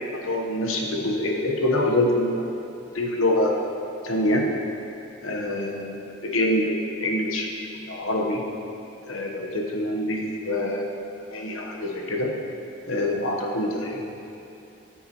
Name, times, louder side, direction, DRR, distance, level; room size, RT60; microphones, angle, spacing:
voice 1, 0.1-2.5 2.9-3.6 4.0-4.4 5.2-7.5 7.9-8.4 9.1-10.9 11.3-12.3 12.9-14.0, left 1 dB, 80° left, 0 dB, 1.2 m, -25 dB
14.0 x 7.0 x 3.0 m, 2.8 s
head